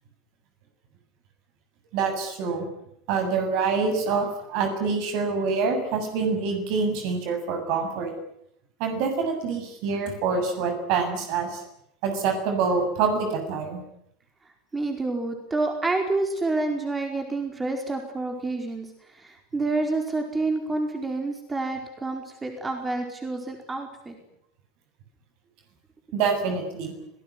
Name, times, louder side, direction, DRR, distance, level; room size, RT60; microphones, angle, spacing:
voice 1, 1.9-2.7 3.1-8.1 8.8-11.6 12.0-13.8 26.1-26.9, right 5 dB, 50° right, 6 dB, 7.5 m, -26 dB
voice 2, 14.7-18.9 19.1-24.2, right 2 dB, 15° right, 4 dB, 4.8 m, -28 dB
26.0 x 18.5 x 9.8 m, 0.76 s
figure-of-eight pair, 80°, 0 cm